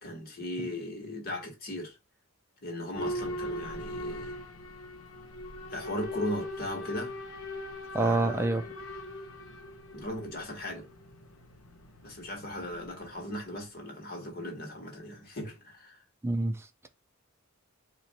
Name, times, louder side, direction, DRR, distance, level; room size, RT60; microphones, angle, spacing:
voice 1, 0.0-2.0 2.6-4.3 5.7-7.1 8.0-8.7 9.9-10.9 12.0-16.0, left 1 dB, 45° left, 1.6 m, -38 dB
Boat Water vehicle / Alarm, 2.9-13.6, left 1 dB, 75° left, 0.8 m, -40 dB
voice 2, 7.9-8.6 16.2-16.7, right 2 dB, 10° right, 0.4 m, -26 dB
4.4 x 2.5 x 4.2 m
head